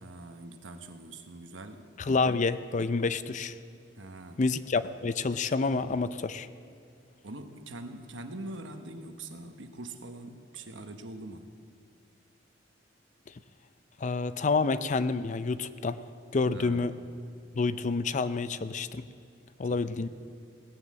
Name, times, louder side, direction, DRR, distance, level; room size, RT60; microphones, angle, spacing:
voice 1, 0.0-2.4 4.0-4.4 7.2-11.5 16.4-17.0 19.7-20.1, right 2 dB, 85° right, 7 dB, 1.2 m, -44 dB
voice 2, 2.0-3.5 4.4-6.5 14.0-16.0 16.3-16.9 17.5-19.0 19.6-20.1, left 4 dB, 40° left, 13 dB, 0.5 m, -28 dB
18.0 x 9.6 x 7.6 m, 2.4 s
head